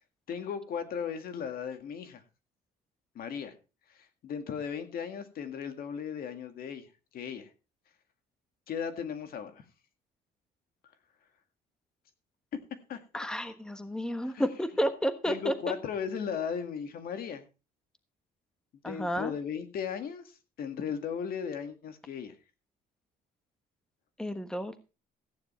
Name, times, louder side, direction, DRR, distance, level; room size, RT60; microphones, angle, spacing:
voice 1, 0.3-2.2 3.2-3.5 3.9-6.9 7.1-7.5 8.7-9.6 12.9-13.3 14.3-14.5 15.3-17.5 18.9-20.2 20.6-22.4, left 7 dB, 60° left, 8 dB, 2.1 m, -36 dB
voice 2, 13.1-15.5 18.8-19.3 24.2-24.8, equal, 5° left, 10 dB, 1.3 m, -31 dB
15.0 x 9.8 x 4.3 m, 0.31 s
cardioid pair, 110°, 17 cm